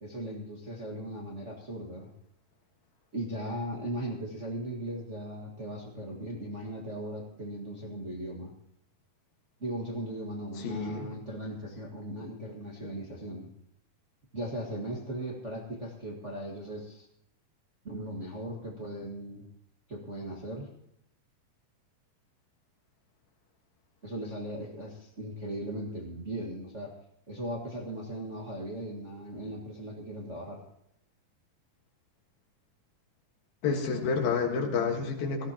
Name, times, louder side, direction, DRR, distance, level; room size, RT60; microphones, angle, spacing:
voice 1, 0.0-2.1 3.1-8.5 9.6-13.5 14.3-17.1 17.8-19.4 19.9-20.7 24.0-26.9 27.3-30.6, right 1 dB, 35° right, -3 dB, 1.2 m, -38 dB
voice 2, 10.6-11.1 33.6-35.5, left 5 dB, 85° left, 2 dB, 3.5 m, -29 dB
17.5 x 14.5 x 2.9 m, 0.76 s
omnidirectional pair, 4.1 m